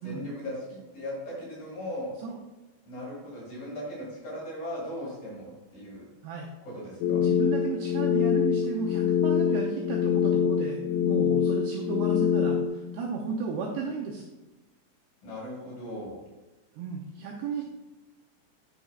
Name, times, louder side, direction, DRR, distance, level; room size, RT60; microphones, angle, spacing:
voice 1, 0.0-2.1 2.9-6.1 6.6-7.2 15.2-16.2, left 1 dB, 50° left, -6 dB, 3.6 m, -38 dB
sound 1, 7.0-12.7, left 8 dB, 85° left, 3.2 m, -25 dB
voice 2, 7.2-14.2 16.7-17.6, right 5 dB, 90° right, 0 dB, 2.3 m, -34 dB
10.0 x 6.8 x 2.4 m, 1.1 s
omnidirectional pair, 5.6 m